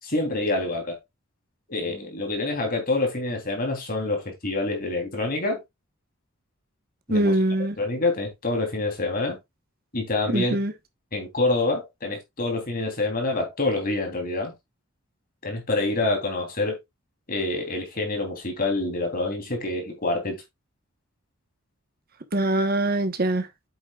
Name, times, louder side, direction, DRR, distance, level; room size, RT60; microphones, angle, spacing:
voice 1, 0.0-1.0 1.7-5.6 7.1-7.3 7.8-9.4 9.9-10.6 11.1-14.5 15.4-16.8 17.3-20.4, left 2 dB, 45° left, 3.3 m, -26 dB
voice 2, 7.1-7.8 10.3-10.7 22.3-23.5, right 1 dB, 45° right, 1.2 m, -23 dB
8.3 x 7.3 x 2.4 m
head